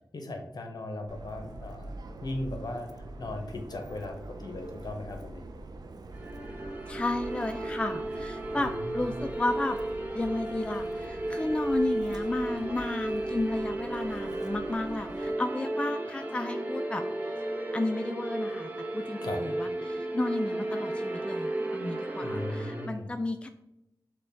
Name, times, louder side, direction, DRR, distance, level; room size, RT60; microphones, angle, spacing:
voice 1, 0.1-1.9 2.2-2.9 3.2-5.5 8.5-9.1 19.2-19.4 22.2-23.1, left 2 dB, 60° left, 4 dB, 0.8 m, -37 dB
Subway metro underground, 1.1-15.3, right 2 dB, 60° right, 0.4 m, -45 dB
sound 1, 6.1-22.9, right 1 dB, 25° right, 0.7 m, -34 dB
voice 2, 6.9-9.8 10.1-17.0 17.7-18.7 18.9-23.5, left 2 dB, 15° left, 7 dB, 0.3 m, -33 dB
6.4 x 2.2 x 3.4 m, 0.89 s
wide cardioid pair, 65°, 8 cm